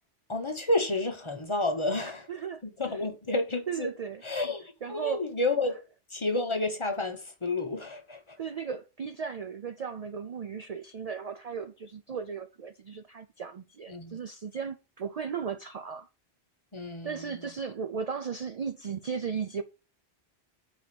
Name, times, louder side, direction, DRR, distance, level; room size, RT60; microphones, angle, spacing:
voice 1, 0.3-2.3 2.8-3.9 4.2-5.8 6.1-8.4 13.9-14.2 16.7-17.3, left 2 dB, 30° left, 0.7 m, -30 dB
voice 2, 2.3-2.6 3.7-4.2 4.8-5.2 8.4-16.1 17.0-19.6, right 6 dB, 55° right, 0.4 m, -36 dB
4.8 x 4.1 x 5.8 m
omnidirectional pair, 1.1 m